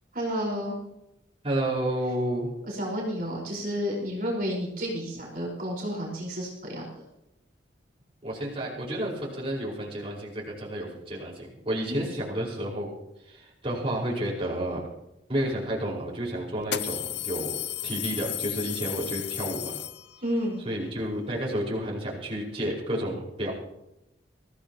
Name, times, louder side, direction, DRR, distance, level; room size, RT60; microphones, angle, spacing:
voice 1, 0.1-0.8 2.7-7.0 20.2-20.6, equal, 50° right, -3 dB, 4.9 m, -31 dB
voice 2, 1.4-2.5 8.2-12.9 13.2-14.8 15.3-17.6 17.8-19.7 20.6-23.5, right 1 dB, 30° right, -4 dB, 5.1 m, -31 dB
sound 1, 15.5-15.6 16.6-20.4, left 13 dB, 65° left, 0.7 m, -34 dB
23.5 x 16.5 x 3.0 m, 0.88 s
head